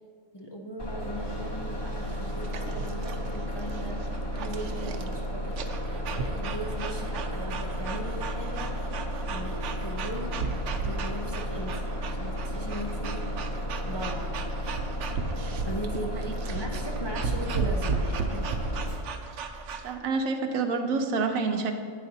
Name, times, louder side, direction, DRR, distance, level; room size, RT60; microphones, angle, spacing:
voice 1, 0.3-9.0 9.3-13.3 13.8-14.3 15.6-18.5, equal, 35° left, -1 dB, 0.4 m, -39 dB
Bus, 0.8-19.0, equal, 20° left, 1.0 m, -33 dB
sound 1, 2.0-19.9, right 5 dB, 70° right, 0.9 m, -36 dB
voice 2, 16.0-16.3 19.8-21.7, right 4 dB, 85° right, 6 dB, 1.2 m, -28 dB
10.5 x 9.1 x 2.8 m, 2.1 s
omnidirectional pair, 1.4 m